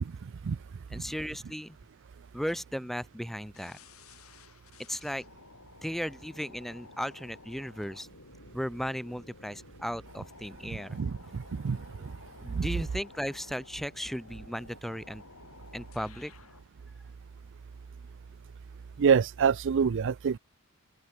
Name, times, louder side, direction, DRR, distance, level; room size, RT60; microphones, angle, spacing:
voice 1, 0.9-1.8 2.3-3.8 4.9-5.2 5.8-8.1 8.5-11.0 12.4-15.2 15.7-16.3, equal, ahead, 6.4 m, -36 dB
sound 1, 3.5-16.7, left 3 dB, 70° left, 5.3 m, -53 dB
voice 2, 19.0-20.4, right 6 dB, 60° right, 0.4 m, -25 dB
open air
head